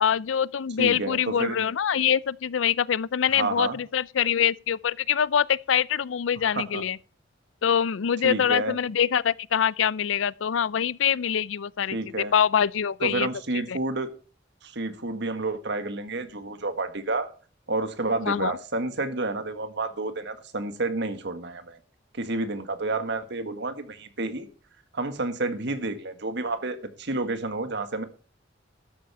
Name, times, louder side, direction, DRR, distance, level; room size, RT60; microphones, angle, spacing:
voice 1, 0.0-7.0 7.6-12.0 12.3-13.3 13.7-13.8 18.2-18.6, left 8 dB, 90° left, 0.5 m, -24 dB
voice 2, 0.8-1.6 3.3-3.8 6.4-6.8 8.2-8.8 11.9-12.3 13.0-14.1 14.6-17.3 17.7-21.8 22.1-24.5 24.9-28.0, right 2 dB, 65° right, 1.7 m, -30 dB
13.0 x 8.3 x 4.2 m
head